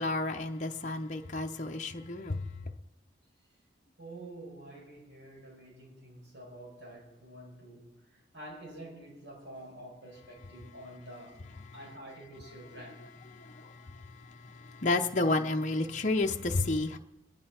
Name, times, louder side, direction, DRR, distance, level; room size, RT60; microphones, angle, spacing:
voice 1, 0.0-2.7 11.6-11.8 12.7-17.0, left 2 dB, 40° left, 0.7 m, -32 dB
voice 2, 4.0-13.0, right 1 dB, 70° right, 5.3 m, -48 dB
26.0 x 11.0 x 4.4 m
head